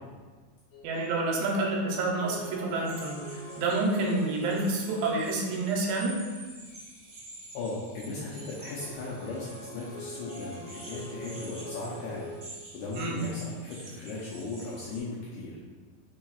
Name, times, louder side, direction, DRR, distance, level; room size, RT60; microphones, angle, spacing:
sound 1, 0.7-5.8 8.3-12.4, left 1 dB, 65° left, 2.1 m, -44 dB
voice 1, 0.8-6.2 13.0-13.2, right 2 dB, 85° right, -1 dB, 2.4 m, -28 dB
sound 2, 2.7-15.0, right 2 dB, 60° right, 0.9 m, -49 dB
voice 2, 7.5-12.3 12.7-15.6, left 3 dB, 80° left, -6 dB, 1.8 m, -37 dB
4.6 x 4.2 x 2.3 m, 1.4 s
omnidirectional pair, 4.1 m